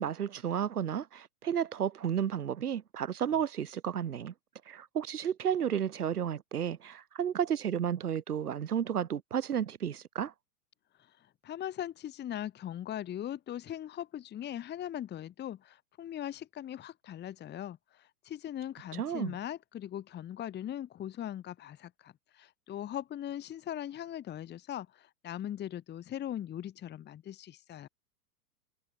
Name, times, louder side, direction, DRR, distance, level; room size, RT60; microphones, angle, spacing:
voice 1, 0.0-4.3 4.7-10.3 18.9-19.4, right 9 dB, 85° right, 2.2 m, -32 dB
voice 2, 11.0-27.9, left 11 dB, 25° left, 1.4 m, -40 dB
hypercardioid pair, 110°, 44 cm